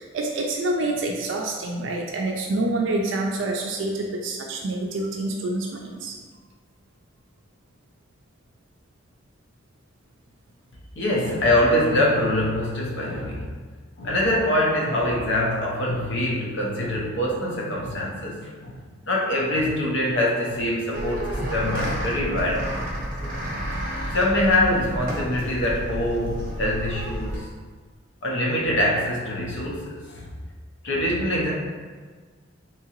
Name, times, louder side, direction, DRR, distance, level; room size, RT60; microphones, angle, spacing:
voice 1, 0.0-6.1, right 2 dB, 70° right, 1 dB, 0.4 m, -27 dB
voice 2, 11.0-13.5 14.0-18.7 19.0-22.8 23.2-23.3 24.1-27.3 28.2-30.3 30.8-31.5, left 1 dB, 65° left, -3 dB, 0.7 m, -24 dB
sound 1, 20.9-27.4, equal, 45° right, 0.7 m, -30 dB
3.6 x 3.0 x 2.9 m, 1.5 s
head